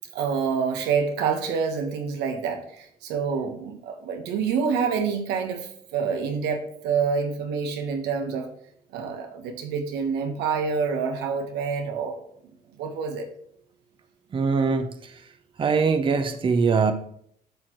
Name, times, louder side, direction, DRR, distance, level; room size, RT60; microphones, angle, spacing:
voice 1, 0.1-8.5 8.9-12.2 12.8-13.3, right 6 dB, 90° right, 5 dB, 1.3 m, -27 dB
voice 2, 14.3-15.2 15.6-16.9, right 5 dB, 30° right, 9 dB, 0.7 m, -22 dB
10.5 x 6.2 x 3.1 m, 0.66 s
cardioid pair, 110°, 17 cm